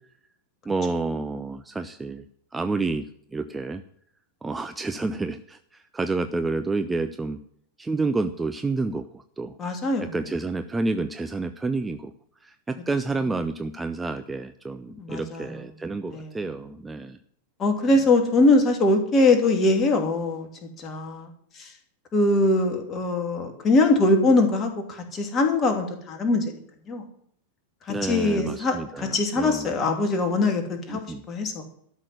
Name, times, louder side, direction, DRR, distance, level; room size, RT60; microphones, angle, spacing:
voice 1, 0.7-2.2 2.5-3.0 3.3-3.8 4.4-7.4 7.8-9.5 10.0-12.1 12.4-17.2 27.9-29.7 30.9-31.2, right 3 dB, 10° right, 9 dB, 0.7 m, -29 dB
voice 2, 9.6-10.2 15.0-15.6 16.1-16.3 17.6-21.3 21.6-21.7 22.1-26.5 26.9-27.0 27.9-31.6, left 2 dB, 25° left, 4 dB, 2.9 m, -22 dB
13.0 x 6.4 x 9.4 m, 0.66 s
figure-of-eight pair, 90°, 0 cm